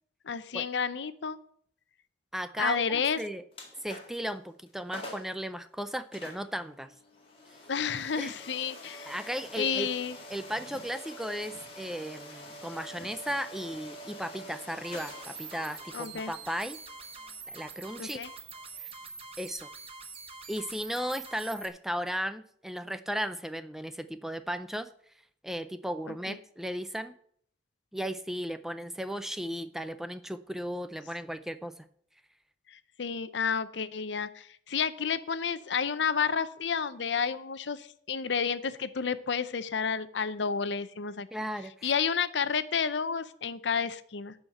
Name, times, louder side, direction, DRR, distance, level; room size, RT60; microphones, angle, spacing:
voice 1, 0.3-1.4 2.6-3.2 7.7-9.1 9.6-10.2 15.9-16.3 18.0-18.3 26.1-26.4 32.7-41.3 41.8-44.3, left 6 dB, 80° left, 14 dB, 0.6 m, -31 dB
voice 2, 2.3-3.4 3.8-6.9 8.2-8.3 9.1-9.9 10.3-16.8 17.5-18.2 18.8-18.9 19.4-19.7 20.5-24.9 25.4-27.1 27.9-31.8 41.3-41.9, equal, ahead, 11 dB, 0.4 m, -35 dB
sound 1, 3.5-4.3 4.7-4.8 4.9-5.4 6.1-18.9, left 1 dB, 30° left, 2.1 m, -47 dB
sound 2, 14.8-21.7, right 4 dB, 30° right, 1.2 m, -45 dB
12.0 x 4.5 x 7.7 m, 0.64 s
head